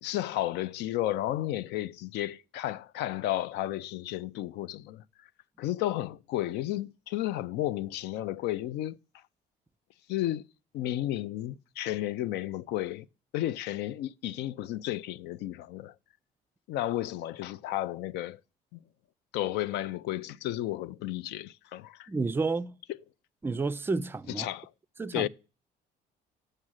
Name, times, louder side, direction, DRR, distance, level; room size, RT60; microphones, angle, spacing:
voice 1, 0.0-5.0 5.6-9.0 10.1-10.4 10.7-13.1 13.3-15.9 16.7-18.4 18.7-18.8 19.3-22.1 24.4-24.7 25.1-25.3, left 14 dB, 80° left, 0.4 m, -32 dB
voice 2, 22.1-22.8 23.4-24.5 25.0-25.3, right 3 dB, 15° right, 0.4 m, -30 dB
7.2 x 6.5 x 6.3 m
cardioid pair, 110°, 17 cm